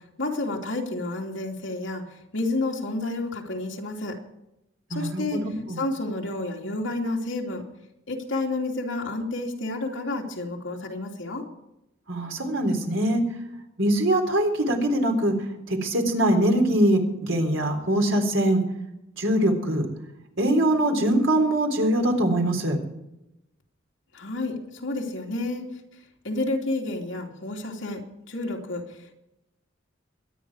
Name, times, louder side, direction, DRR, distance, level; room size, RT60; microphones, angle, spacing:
voice 1, 0.2-2.0 2.3-4.2 4.9-5.4 5.8-7.6 8.1-11.5 24.1-25.7 26.2-28.0 28.3-29.1, left 2 dB, 70° left, 0 dB, 2.9 m, -30 dB
voice 2, 4.9-5.8 12.1-13.2 13.8-15.3 15.7-18.6 19.1-19.9 20.4-22.8, right 1 dB, 90° right, 3 dB, 3.8 m, -22 dB
23.0 x 10.5 x 4.9 m, 0.89 s
head